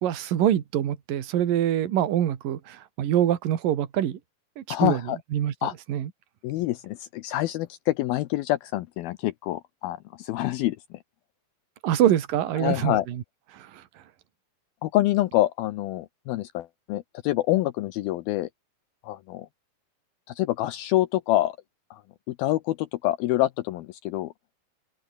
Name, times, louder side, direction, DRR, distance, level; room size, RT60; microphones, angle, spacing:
voice 1, 0.0-4.2 4.6-5.0 5.3-5.5 5.9-6.1 11.8-13.2 13.5-13.8, right 11 dB, 60° right, 3.4 m, -25 dB
voice 2, 4.7-5.2 5.6-5.7 6.4-11.0 12.6-13.1 14.8-18.5 19.0-19.5 20.3-21.6 21.9-22.0 22.3-24.3, left 15 dB, 75° left, 2.4 m, -26 dB
open air
omnidirectional pair, 4.7 m